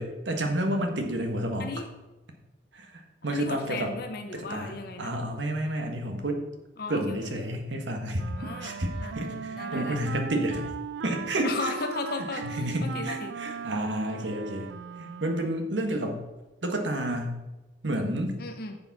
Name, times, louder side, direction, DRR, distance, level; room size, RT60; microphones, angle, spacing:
voice 1, 0.0-1.7 2.7-3.9 4.3-6.4 6.9-8.2 8.6-8.9 9.1-10.7 11.0-11.7 12.3-14.7 15.0-16.2 16.6-17.4 17.8-18.4, right 1 dB, 90° right, 4 dB, 1.5 m, -30 dB
voice 2, 3.3-5.2 6.8-7.7 8.4-10.0 11.4-13.3 18.4-18.8, left 3 dB, 55° left, 5 dB, 0.8 m, -36 dB
Wind instrument woodwind instrument, 8.2-15.7, right 6 dB, 75° right, 0.3 m, -38 dB
10.5 x 7.1 x 4.1 m, 1.1 s
head